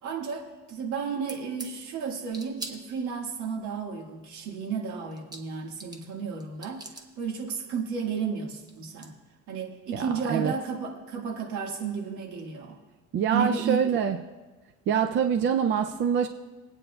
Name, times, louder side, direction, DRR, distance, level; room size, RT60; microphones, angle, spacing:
voice 1, 0.0-9.2 9.5-12.8 13.3-13.8, right 6 dB, 60° right, 1 dB, 1.7 m, -33 dB
sound 1, 1.3-1.7 2.3-3.3 4.8-4.9 5.1-6.1 6.4-7.1 8.4-8.5 8.7-9.1, right 2 dB, 10° right, 0.8 m, -42 dB
voice 2, 9.9-10.5 13.1-14.2 14.9-16.3, right 7 dB, 35° right, 7 dB, 0.4 m, -25 dB
23.0 x 8.8 x 2.3 m, 1.2 s
cardioid pair, 155°, 33 cm